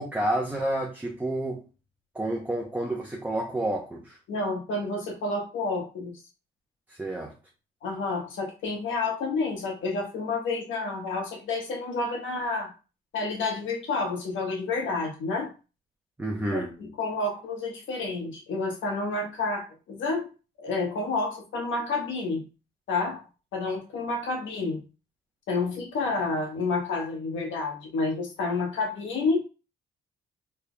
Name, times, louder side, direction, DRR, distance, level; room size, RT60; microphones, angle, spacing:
voice 1, 0.0-1.6 2.1-4.2 7.0-7.3 16.2-16.7, right 1 dB, 10° right, 0.7 m, -29 dB
voice 2, 4.3-6.1 7.8-12.7 13.1-15.5 16.5-20.3 20.6-22.4 22.9-23.2 23.5-24.8 25.5-29.4, left 3 dB, 75° left, 1.2 m, -29 dB
4.0 x 3.2 x 2.2 m
cardioid pair, 90°, 20 cm